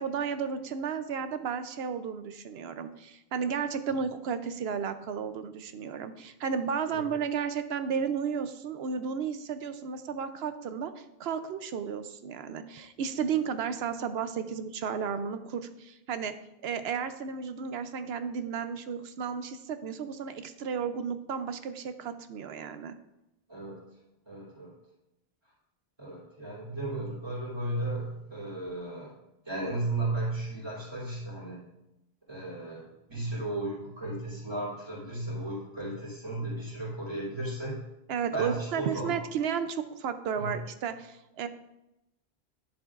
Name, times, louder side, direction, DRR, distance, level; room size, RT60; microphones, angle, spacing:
voice 1, 0.0-16.3 16.6-23.0 38.1-41.5, right 6 dB, 75° right, 10 dB, 0.8 m, -33 dB
voice 2, 23.5-23.8 24.3-24.7 26.0-29.1 29.4-31.7 32.3-37.8 38.3-39.2 40.4-40.6, right 2 dB, 25° right, -5 dB, 3.0 m, -35 dB
10.5 x 7.2 x 2.4 m, 0.90 s
omnidirectional pair, 1.1 m